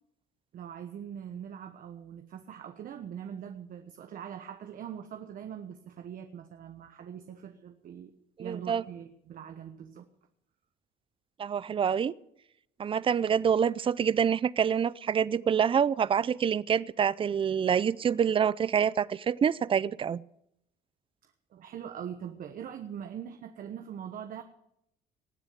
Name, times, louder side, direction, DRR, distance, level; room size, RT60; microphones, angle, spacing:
voice 1, 0.5-8.1 8.4-10.1 21.2-24.4, right 8 dB, 55° right, 1.1 m, -42 dB
voice 2, 8.4-8.8 11.4-12.1 12.8-20.2, right 7 dB, 30° right, 0.5 m, -26 dB
19.0 x 7.0 x 8.5 m
cardioid pair, 110°, 17 cm